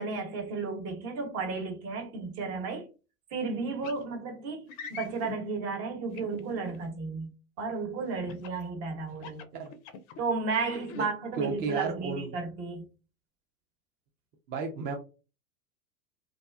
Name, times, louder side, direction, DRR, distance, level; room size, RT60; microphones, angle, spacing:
voice 1, 0.0-2.9 3.3-7.3 7.6-9.4 10.2-12.9, right 4 dB, 50° right, 1.0 m, -33 dB
sound 1, 3.8-4.0 4.7-5.4 6.2-6.8 8.3-8.6 9.1-10.2 10.7-11.1, left 5 dB, 40° left, 0.4 m, -42 dB
voice 2, 11.4-12.4 14.5-15.0, right 4 dB, 25° right, 0.3 m, -33 dB
2.4 x 2.3 x 2.2 m
hypercardioid pair, 95°, 41 cm